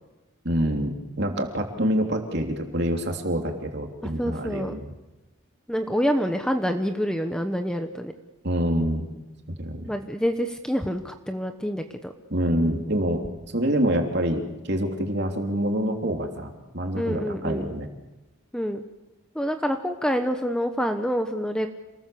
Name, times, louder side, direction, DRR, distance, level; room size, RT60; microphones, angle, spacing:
voice 1, 0.4-4.9 8.4-9.1 9.6-9.9 12.3-13.2 13.5-17.9, equal, 50° right, 3 dB, 3.2 m, -26 dB
voice 2, 4.0-4.7 5.7-8.1 9.9-12.1 16.9-17.7 18.5-18.8 19.3-21.7, equal, 5° left, 6 dB, 1.0 m, -27 dB
28.0 x 20.5 x 7.0 m, 1.0 s
head